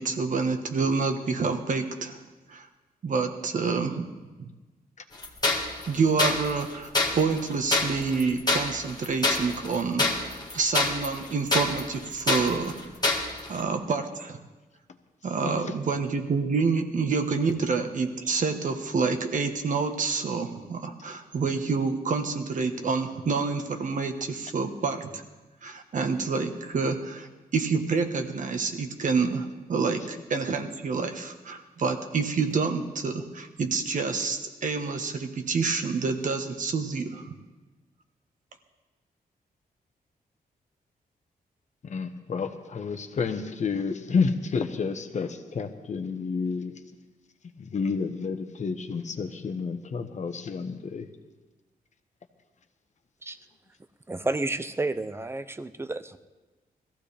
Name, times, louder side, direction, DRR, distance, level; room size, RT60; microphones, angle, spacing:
voice 1, 0.0-2.2 2.5-2.7 3.0-4.1 4.4-4.5 5.9-12.8 13.5-14.4 15.2-25.2 25.6-37.3, right 4 dB, 55° right, 6 dB, 1.4 m, -28 dB
sound 1, 5.2-13.6, left 2 dB, 25° left, 1.7 m, -27 dB
voice 2, 15.4-15.8 41.8-46.7 47.6-51.1, left 5 dB, 50° left, 7 dB, 1.2 m, -30 dB
voice 3, 54.1-56.2, right 2 dB, 15° right, 12 dB, 0.6 m, -31 dB
21.0 x 15.0 x 3.4 m, 1.2 s
wide cardioid pair, 125°, 16 cm